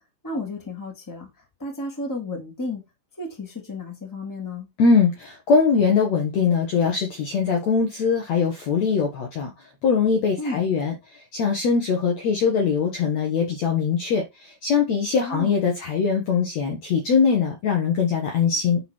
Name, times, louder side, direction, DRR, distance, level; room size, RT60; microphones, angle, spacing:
voice 1, 0.2-1.3 1.6-2.8 3.2-4.7 10.4-10.6 15.2-15.5, left 2 dB, 5° left, 1.9 m, -32 dB
voice 2, 4.8-9.5 9.8-11.0 11.3-18.8, left 5 dB, 60° left, 2.0 m, -21 dB
9.7 x 4.1 x 4.5 m
omnidirectional pair, 4.4 m